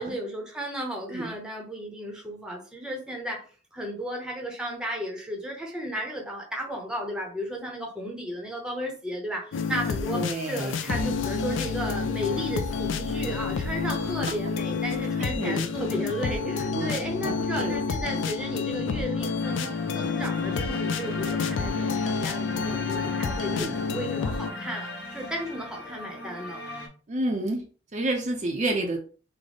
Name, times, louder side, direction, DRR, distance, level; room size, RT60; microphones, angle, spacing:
voice 1, 0.0-3.4 3.7-26.6, equal, 5° right, 0.7 m, -34 dB
sound 1, 9.5-24.5, left 5 dB, 90° left, 0.4 m, -29 dB
voice 2, 10.1-11.1 13.8-13.9 15.2-15.7 16.7-18.2 23.6-23.8 27.1-27.6 27.9-29.0, right 1 dB, 40° right, 0.5 m, -31 dB
sound 2, 19.4-26.9, left 1 dB, 55° left, 0.7 m, -38 dB
3.8 x 2.0 x 3.3 m
head